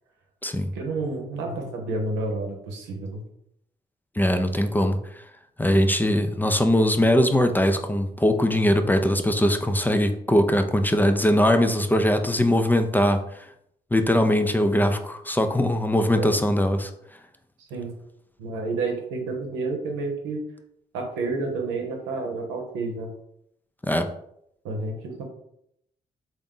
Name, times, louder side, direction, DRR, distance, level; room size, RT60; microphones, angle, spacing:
voice 1, 0.7-3.2 16.1-16.4 17.6-17.9 18.4-20.4 20.9-23.1 24.6-25.2, right 3 dB, 85° right, 2 dB, 0.8 m, -30 dB
voice 2, 4.2-5.0 5.6-13.5 13.9-16.9 23.8-24.1, left 1 dB, 10° left, 7 dB, 0.5 m, -21 dB
3.7 x 2.6 x 3.6 m, 0.75 s
hypercardioid pair, 50°, 18 cm